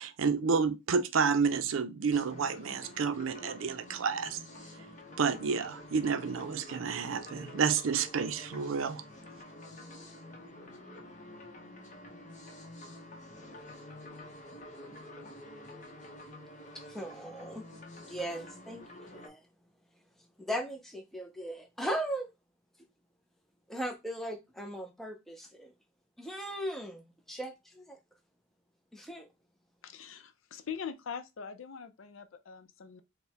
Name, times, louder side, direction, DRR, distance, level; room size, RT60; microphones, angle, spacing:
voice 1, 0.0-4.4 5.2-9.0, right 5 dB, 85° right, 0.5 m, -30 dB
sound 1, 2.1-19.3, left 1 dB, 40° left, 0.9 m, -49 dB
voice 2, 16.9-17.6 18.0-18.8 19.1-19.4 20.5-22.3 23.7-25.7 26.2-28.0 28.9-29.3, right 1 dB, ahead, 0.5 m, -38 dB
voice 3, 29.8-33.0, left 7 dB, 85° left, 0.5 m, -42 dB
4.4 x 2.2 x 3.4 m
head